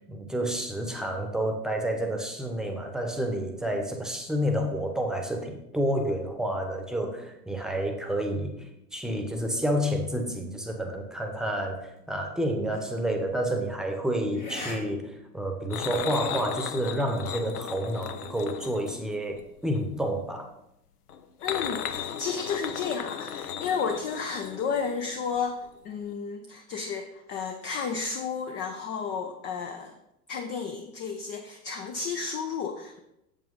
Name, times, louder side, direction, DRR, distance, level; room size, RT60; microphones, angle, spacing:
voice 1, 0.1-8.5 8.9-20.5, right 1 dB, ahead, 4 dB, 1.0 m, -29 dB
sound 1, 12.7-13.0 14.3-14.8 15.1-15.2 15.7-16.4, left 2 dB, 85° left, 2.7 m, -40 dB
sound 2, 15.7-19.9 21.1-25.4 25.6-25.8 26.1-26.2, left 9 dB, 65° left, 0.9 m, -36 dB
voice 2, 21.4-30.0 30.3-33.0, left 6 dB, 25° left, 5 dB, 0.6 m, -32 dB
7.5 x 7.5 x 3.9 m, 0.83 s
figure-of-eight pair, 90°, 49 cm